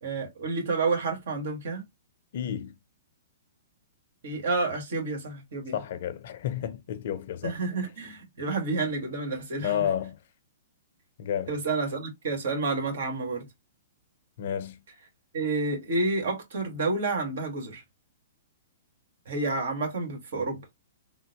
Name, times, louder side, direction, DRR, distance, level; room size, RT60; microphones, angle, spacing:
voice 1, 0.0-1.8 4.2-5.8 7.4-9.8 11.5-13.5 15.3-17.8 19.3-20.6, right 3 dB, 65° right, 1.5 m, -29 dB
voice 2, 2.3-2.7 5.7-7.6 9.6-10.2 11.2-11.6 14.4-14.8, left 9 dB, 60° left, 0.5 m, -31 dB
3.6 x 2.0 x 2.8 m
hypercardioid pair, 125°, 0 cm